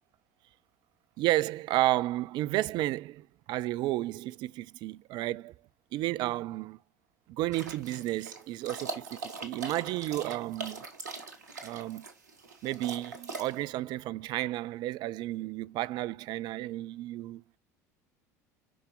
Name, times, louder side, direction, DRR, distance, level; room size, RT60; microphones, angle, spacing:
voice 1, 1.2-5.5 5.9-6.8 7.3-10.8 11.6-12.1 12.6-17.4, right 16 dB, 55° right, 0.4 m, -32 dB
sound 1, 7.5-13.6, right 4 dB, 80° right, 1.6 m, -41 dB
8.5 x 5.7 x 3.7 m
hypercardioid pair, 65°, 9 cm